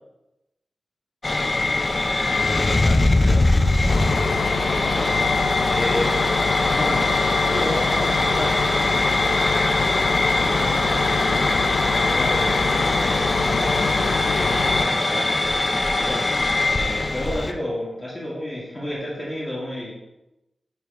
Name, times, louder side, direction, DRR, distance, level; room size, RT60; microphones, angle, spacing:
sound 1, 1.2-17.5, left 2 dB, 30° left, 0.5 m, -22 dB
voice 1, 1.6-4.3 4.7-5.2 5.7-6.1 6.7-7.1 7.5-9.2 10.4-15.4 15.9-16.3 16.7-19.9, left 1 dB, 10° left, -7 dB, 1.9 m, -32 dB
Bus, 3.9-14.8, left 4 dB, 80° left, 0.5 m, -26 dB
5.3 x 5.0 x 4.7 m, 0.95 s
wide cardioid pair, 135°, 0 cm